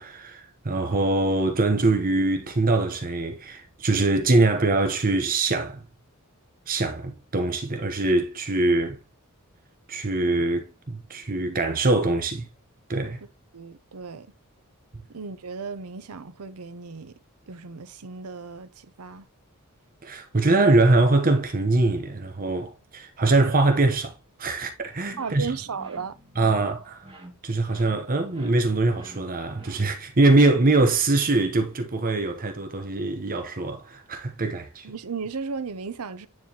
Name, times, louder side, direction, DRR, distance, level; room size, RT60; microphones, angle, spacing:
voice 1, 0.0-5.8 6.7-9.0 9.9-12.5 12.9-13.2 14.9-15.1 20.0-25.5 26.4-27.1 27.4-34.9, right 2 dB, 40° right, 0.9 m, -23 dB
voice 2, 13.5-14.3 15.1-17.2 17.5-19.3 25.2-26.2 34.8-36.3, right 5 dB, 80° right, 0.7 m, -35 dB
sound 1, 25.1-30.2, right 1 dB, 25° right, 2.2 m, -48 dB
9.7 x 4.5 x 2.9 m
head